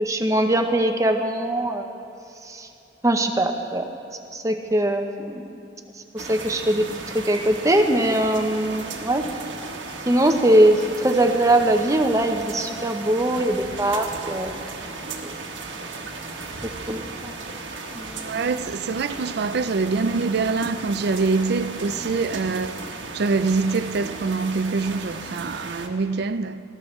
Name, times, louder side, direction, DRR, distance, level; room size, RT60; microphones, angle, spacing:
voice 1, 0.0-1.9 2.5-2.7 3.0-3.9 4.3-5.6 6.1-6.9 7.1-9.2 10.1-14.5 15.2-15.3 16.9-17.3 17.9-18.5, right 1 dB, 15° right, 0.8 m, -21 dB
sound 1, 6.2-25.9, right 3 dB, 75° right, 1.3 m, -35 dB
voice 2, 18.2-22.8 23.1-26.6, right 4 dB, 60° right, 0.4 m, -24 dB
19.0 x 15.0 x 3.2 m
head